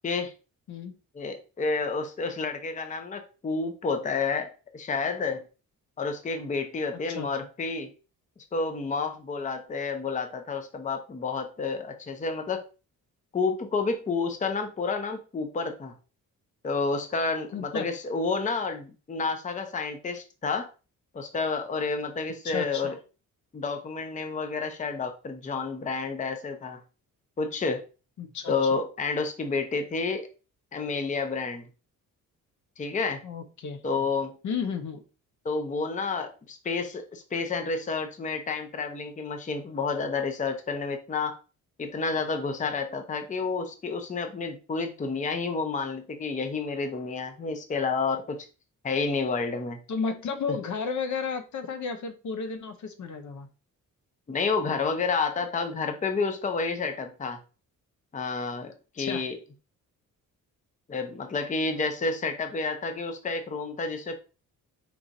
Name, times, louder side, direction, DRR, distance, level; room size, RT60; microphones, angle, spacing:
voice 1, 1.1-5.4 6.0-7.9 8.5-12.6 13.3-15.9 16.6-20.7 21.1-23.0 23.5-26.8 27.4-27.8 28.5-30.3 30.7-31.7 32.8-33.2 33.8-34.4 35.4-41.3 41.8-48.5 48.8-49.8 54.3-57.4 58.1-59.4 60.9-64.1, left 4 dB, 20° left, 7 dB, 0.6 m, -30 dB
voice 2, 17.5-17.9 22.4-23.0 28.2-28.5 33.2-33.8 34.4-35.0 49.9-53.5 59.0-59.2, left 5 dB, 55° left, 7 dB, 0.8 m, -33 dB
4.6 x 2.5 x 4.0 m, 0.33 s
cardioid pair, 120°, 34 cm